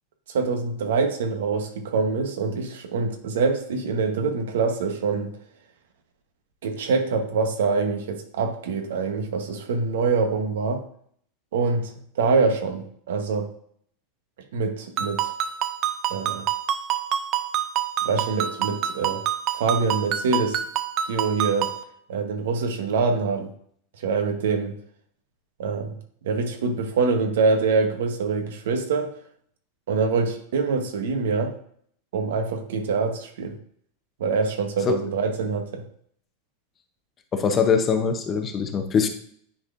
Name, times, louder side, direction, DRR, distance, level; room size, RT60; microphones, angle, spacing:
voice 1, 0.3-5.3 6.6-10.8 11.5-13.5 14.5-15.3 16.1-16.5 18.0-19.2 19.5-20.6 21.1-21.7 22.1-23.5 24.0-24.7 25.6-26.0 26.2-29.1 29.9-31.5 32.1-33.6 34.2-35.8, right 4 dB, 85° right, 6 dB, 1.1 m, -25 dB
Ringtone, 15.0-21.8, right 10 dB, 35° right, 0.5 m, -27 dB
voice 2, 37.3-39.1, left 6 dB, 25° left, 7 dB, 0.7 m, -22 dB
9.8 x 4.1 x 2.6 m, 0.63 s
supercardioid pair, 150°, 0 cm